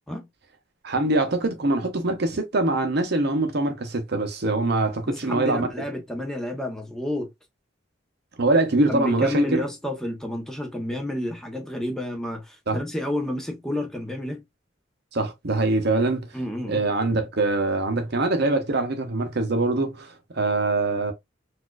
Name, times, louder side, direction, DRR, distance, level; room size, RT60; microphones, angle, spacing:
voice 1, 0.8-5.7 8.4-9.6 12.7-12.8 15.1-16.3 16.7-21.1, right 2 dB, 55° right, 0.8 m, -23 dB
voice 2, 5.1-7.3 8.9-14.4 16.3-16.8, left 1 dB, 5° left, 0.9 m, -30 dB
4.1 x 2.5 x 2.3 m
head